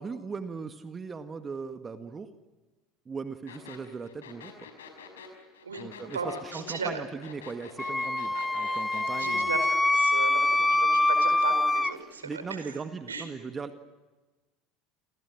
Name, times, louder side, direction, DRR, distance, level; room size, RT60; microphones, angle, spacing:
voice 1, 0.0-2.3 3.0-4.7 5.8-9.5 12.2-13.7, right 5 dB, 25° right, 8 dB, 1.8 m, -38 dB
sound 1, 3.5-9.5, left 6 dB, 75° left, 5.4 m, -46 dB
voice 2, 6.1-7.0 8.3-8.4 9.1-12.8 13.1-13.2, right 4 dB, 80° right, 9 dB, 4.8 m, -36 dB
Wind instrument woodwind instrument, 7.8-11.9, left 2 dB, 10° left, 1.0 m, -25 dB
29.5 x 28.5 x 6.2 m, 1.2 s
figure-of-eight pair, 70°, 0 cm